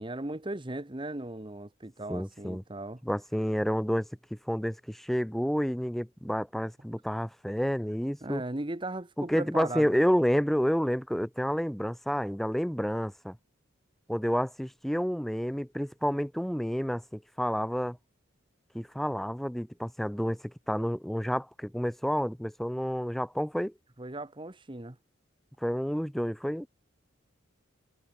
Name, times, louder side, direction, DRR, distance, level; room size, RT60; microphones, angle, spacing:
voice 1, 0.0-3.0 8.2-10.1 24.0-25.0, right 2 dB, 25° right, 1.1 m, -37 dB
voice 2, 2.1-2.6 3.0-4.1 4.5-8.4 9.2-13.4 14.1-18.0 18.7-23.7 25.6-26.7, equal, ahead, 1.0 m, -29 dB
head